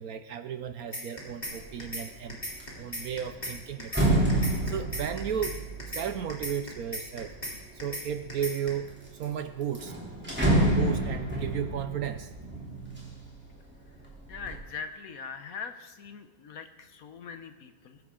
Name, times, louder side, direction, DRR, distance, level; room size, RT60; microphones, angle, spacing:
voice 1, 0.0-2.4 2.8-5.5 5.9-7.3 7.8-8.9 9.2-9.9 10.5-12.3, right 8 dB, 65° right, 10 dB, 1.0 m, -34 dB
sound 1, 0.9-1.5 1.8-2.0 2.3-3.5 3.8-4.0 4.3-5.5 5.8-6.0 6.3-7.5 7.8-8.0 8.3-8.7, left 1 dB, 25° left, 3.4 m, -35 dB
sound 2, 1.5-1.9 2.3-7.6 8.2-8.9 9.2-9.3 9.6-13.5 13.9-14.5, right 1 dB, 5° right, 2.9 m, -29 dB
voice 2, 14.3-18.0, left 6 dB, 60° left, 8 dB, 1.2 m, -41 dB
21.0 x 11.0 x 3.8 m, 1.3 s
omnidirectional pair, 1.9 m